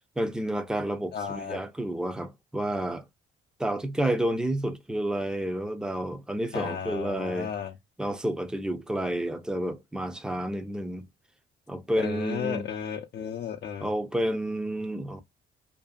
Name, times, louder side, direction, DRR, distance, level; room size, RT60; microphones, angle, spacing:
voice 1, 0.2-3.0 3.6-7.5 8.0-11.1 11.7-12.6 13.8-15.2, right 1 dB, 5° right, 0.5 m, -30 dB
voice 2, 1.1-1.6 6.5-7.8 12.0-13.9, left 8 dB, 55° left, 0.5 m, -34 dB
2.6 x 2.4 x 2.3 m
cardioid pair, 90°, 20 cm